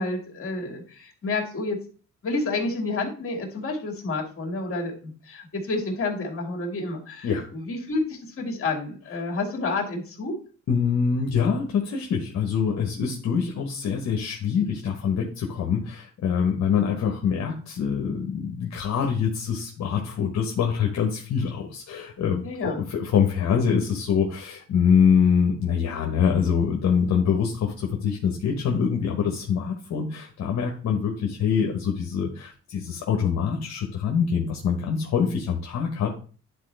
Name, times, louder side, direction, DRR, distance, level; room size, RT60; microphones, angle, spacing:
voice 1, 0.0-1.8 2.2-10.3 21.3-21.5 22.4-22.8, left 3 dB, 45° left, 1 dB, 2.4 m, -29 dB
voice 2, 10.7-36.1, left 7 dB, 65° left, 0 dB, 1.2 m, -24 dB
10.5 x 4.1 x 3.4 m, 0.40 s
cardioid pair, 90°, 30 cm